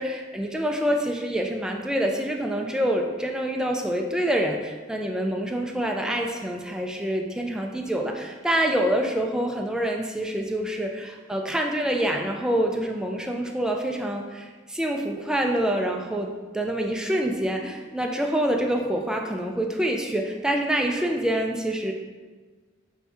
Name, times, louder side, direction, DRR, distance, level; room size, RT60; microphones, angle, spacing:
voice 1, 0.0-21.9, right 1 dB, 5° right, 2 dB, 0.3 m, -26 dB
5.6 x 2.6 x 3.4 m, 1.4 s
head